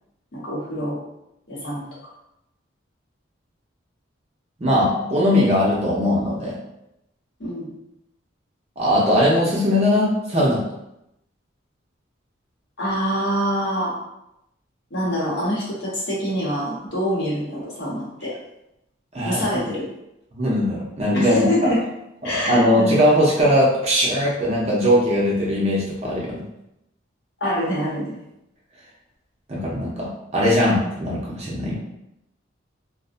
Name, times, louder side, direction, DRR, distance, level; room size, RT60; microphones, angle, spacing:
voice 1, 0.3-1.0 1.5-1.9 7.4-7.7 12.8-14.0 14.9-18.3 19.2-19.9 21.1-21.8 22.2-23.0 27.4-28.2, equal, 60° left, -6 dB, 0.8 m, -25 dB
voice 2, 4.6-6.6 8.8-10.6 19.1-19.4 20.3-21.7 22.2-26.4 29.5-31.8, equal, 30° right, -5 dB, 0.5 m, -20 dB
2.5 x 2.0 x 2.5 m, 0.85 s
head